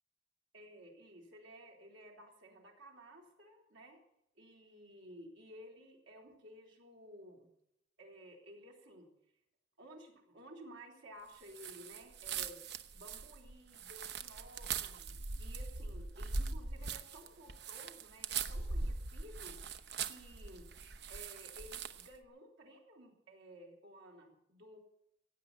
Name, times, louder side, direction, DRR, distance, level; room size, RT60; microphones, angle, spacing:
voice 1, 0.5-4.0 4.4-7.5 8.0-9.1 9.8-12.6 12.9-20.7 21.1-24.8, equal, 80° right, 0 dB, 3.9 m, -55 dB
sound 1, 11.5-22.1, right 4 dB, 55° right, 0.8 m, -41 dB
16.0 x 8.8 x 8.5 m, 0.81 s
head